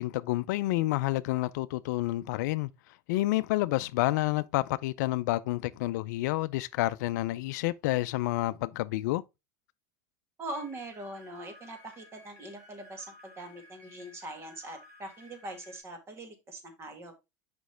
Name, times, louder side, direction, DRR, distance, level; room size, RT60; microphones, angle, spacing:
voice 1, 0.0-2.7 3.1-9.2, left 18 dB, 75° left, 0.4 m, -29 dB
voice 2, 10.4-17.1, right 1 dB, 25° right, 1.9 m, -42 dB
sound 1, 10.5-15.8, left 1 dB, 75° right, 2.4 m, -55 dB
6.2 x 5.2 x 3.3 m
supercardioid pair, 120°, 10 cm